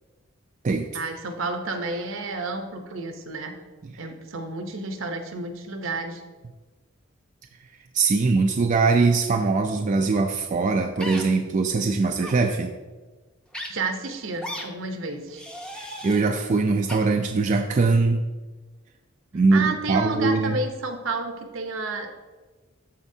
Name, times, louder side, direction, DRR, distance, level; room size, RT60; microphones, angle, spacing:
voice 1, 0.9-3.6 4.0-6.2 13.7-15.4 19.5-22.1, right 3 dB, 70° right, 5 dB, 0.8 m, -31 dB
voice 2, 7.9-12.7 15.8-18.2 19.3-20.6, right 3 dB, 40° right, 3 dB, 0.4 m, -22 dB
sound 1, 11.0-11.2 12.2-12.4 13.5-13.7 14.4-14.7 15.3-16.2 16.9-17.0, equal, 5° left, 0.7 m, -35 dB
13.0 x 4.4 x 2.7 m, 1.3 s
head